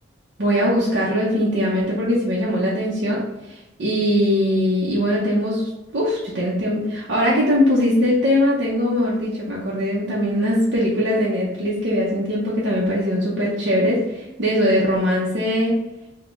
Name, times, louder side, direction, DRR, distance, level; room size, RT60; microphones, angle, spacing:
voice 1, 0.4-3.2 3.5-15.8, equal, 65° right, -6 dB, 0.7 m, -21 dB
5.2 x 2.2 x 3.0 m, 0.97 s
head